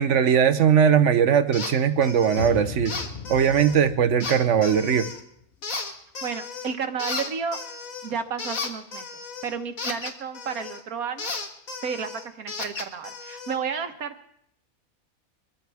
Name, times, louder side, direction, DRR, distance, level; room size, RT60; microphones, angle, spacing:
voice 1, 0.0-2.9 3.3-5.1, right 8 dB, 60° right, 12 dB, 1.0 m, -20 dB
sound 1, 1.5-1.7 2.0-2.5 2.9-3.8 4.2-5.2 5.6-6.7 7.0-10.8 11.2-13.6, left 4 dB, 70° left, 2.0 m, -34 dB
sound 2, 2.4-5.6, left 5 dB, 45° left, 1.2 m, -37 dB
voice 2, 6.2-7.6 8.0-9.1 9.4-11.3 11.8-14.3, right 6 dB, 80° right, 8 dB, 1.6 m, -32 dB
24.5 x 14.0 x 3.5 m, 0.71 s
omnidirectional pair, 1.5 m